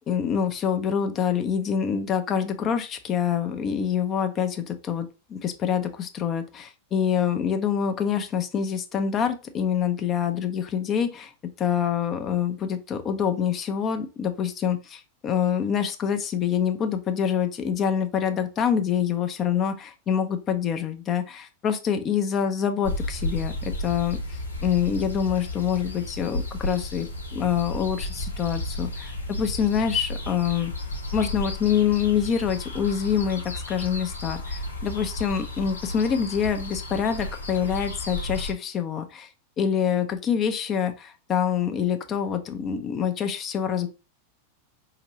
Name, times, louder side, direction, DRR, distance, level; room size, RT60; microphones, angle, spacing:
voice 1, 0.1-11.3 11.6-30.7 31.1-39.3 39.6-43.9, left 8 dB, 30° left, 7 dB, 0.6 m, -26 dB
sound 1, 22.8-38.5, left 1 dB, 80° left, 1.0 m, -33 dB
4.3 x 2.9 x 3.0 m, 0.30 s
figure-of-eight pair, 90°, 0 cm